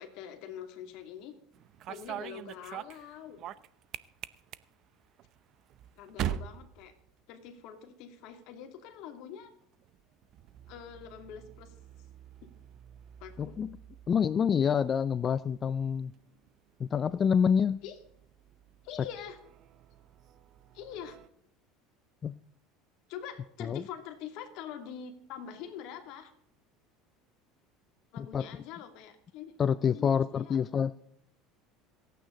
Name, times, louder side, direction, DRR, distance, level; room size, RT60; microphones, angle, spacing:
voice 1, 0.0-1.3 1.9-3.4 6.0-6.9 7.3-9.5 10.7-11.7 13.2-13.5 17.8-18.0 18.8-19.4 20.7-21.2 23.1-26.3 28.1-29.5 29.9-30.6, left 8 dB, 65° left, 6 dB, 2.5 m, -44 dB
sound 1, 1.5-7.7 8.0-8.5 9.6-21.3, right 11 dB, 50° right, 0.7 m, -45 dB
voice 2, 13.4-13.8 14.1-16.1 16.8-17.8 22.2-22.3 23.6-23.8 28.3-28.4 29.6-30.9, left 7 dB, 35° left, 17 dB, 0.4 m, -27 dB
27.0 x 9.1 x 3.9 m, 0.67 s
supercardioid pair, 115°, 0 cm